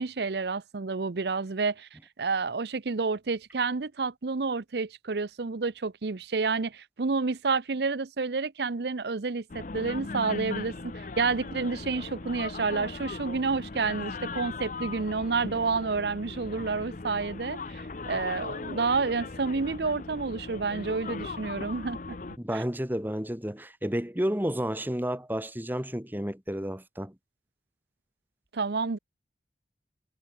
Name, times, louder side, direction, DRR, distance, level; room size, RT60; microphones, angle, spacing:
voice 1, 0.0-22.2 22.5-22.6 28.5-29.0, right 4 dB, 65° right, 0.7 m, -29 dB
sound 1, 9.5-22.4, left 3 dB, 45° left, 0.8 m, -38 dB
voice 2, 22.4-27.1, equal, 10° right, 1.7 m, -31 dB
head